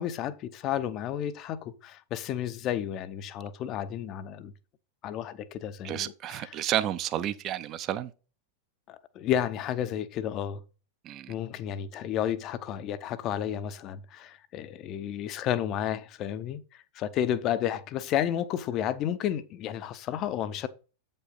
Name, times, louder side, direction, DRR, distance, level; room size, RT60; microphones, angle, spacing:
voice 1, 0.0-4.5 5.0-6.4 8.9-10.6 11.3-20.7, left 10 dB, 35° left, 0.7 m, -32 dB
voice 2, 5.8-8.1 11.0-11.4, right 11 dB, 35° right, 0.6 m, -31 dB
8.2 x 5.4 x 4.0 m
figure-of-eight pair, 90°, 0 cm